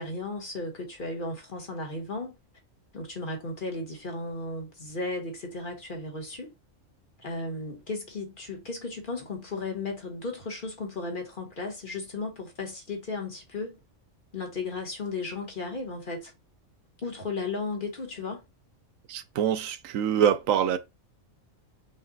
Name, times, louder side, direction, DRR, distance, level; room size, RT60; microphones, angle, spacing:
voice 1, 0.0-2.4 2.9-6.5 7.2-13.8 14.3-16.3 17.0-18.4, left 3 dB, 40° left, 1.3 m, -35 dB
voice 2, 19.1-20.8, right 9 dB, 90° right, 1.0 m, -25 dB
5.4 x 2.4 x 3.9 m
omnidirectional pair, 1.4 m